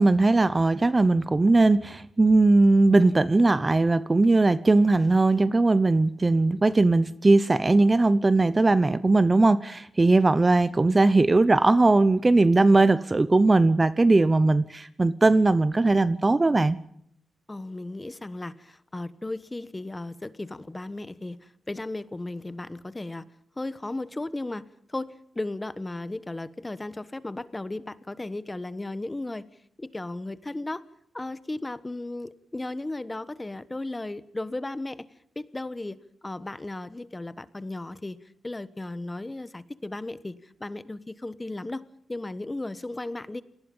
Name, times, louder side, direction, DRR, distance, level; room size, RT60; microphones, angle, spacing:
voice 1, 0.0-16.8, right 2 dB, 20° right, 16 dB, 0.7 m, -19 dB
voice 2, 17.5-23.2 23.6-24.6 24.9-29.4 29.8-30.8 31.1-35.1 35.3-41.8 42.1-43.4, left 2 dB, 15° left, 14 dB, 1.2 m, -35 dB
28.5 x 19.0 x 5.5 m, 0.71 s
cardioid pair, 105°, 0 cm